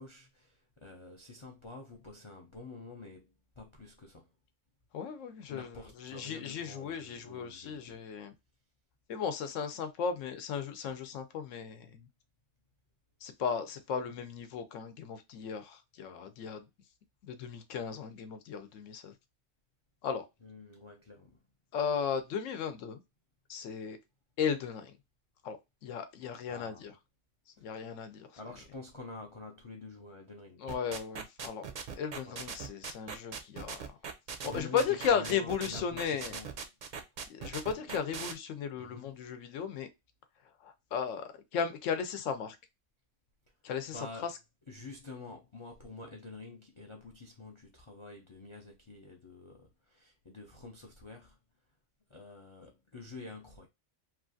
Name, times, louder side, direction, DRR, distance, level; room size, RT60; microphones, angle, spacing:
voice 1, 0.0-4.3 5.5-8.0 20.4-21.5 26.5-26.9 27.6-27.7 28.4-30.7 32.2-32.4 33.9-34.1 34.4-36.6 37.7-38.0 38.8-39.2 43.9-44.3 44.7-51.4 52.1-53.7, left 3 dB, 55° left, 0.3 m, -48 dB
voice 2, 4.9-8.3 9.1-12.1 13.2-16.7 17.3-19.1 20.0-20.3 21.7-23.0 23.5-24.0 24.4-24.9 25.4-26.9 27.6-28.3 30.6-31.6 32.0-34.0 34.4-36.4 37.3-39.9 40.6-42.6 43.6-44.3, left 7 dB, 90° left, 1.0 m, -35 dB
sound 1, 30.7-38.3, right 6 dB, 55° right, 0.5 m, -40 dB
3.1 x 2.4 x 2.5 m
omnidirectional pair, 1.3 m